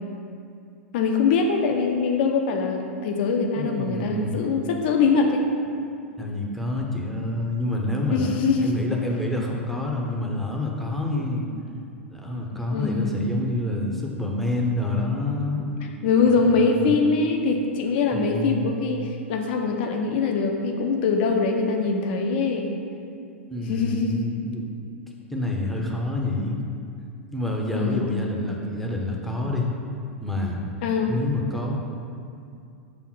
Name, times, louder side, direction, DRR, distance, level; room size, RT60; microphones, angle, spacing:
voice 1, 0.9-5.5 8.1-8.8 12.7-13.1 16.0-19.0 19.3-22.7 23.7-24.2 27.7-28.0 30.8-31.1, left 4 dB, 50° left, 3 dB, 0.7 m, -23 dB
voice 2, 3.6-4.4 6.2-11.5 12.1-15.6 16.3-16.9 18.1-18.7 23.5-24.7 25.3-26.6 27.3-29.7 30.2-30.6 31.1-31.8, left 2 dB, 5° left, -1 dB, 0.8 m, -27 dB
6.3 x 3.5 x 6.1 m, 2.4 s
figure-of-eight pair, 95°, 7 cm